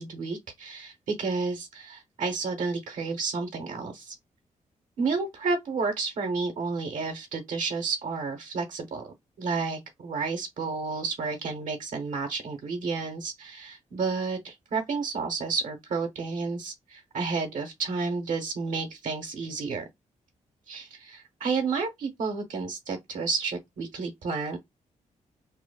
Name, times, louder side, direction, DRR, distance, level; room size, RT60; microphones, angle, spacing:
voice 1, 0.0-4.1 5.0-19.8 20.7-24.6, right 4 dB, 80° right, 0.8 m, -31 dB
3.0 x 2.0 x 2.2 m
wide cardioid pair, 135°, 13 cm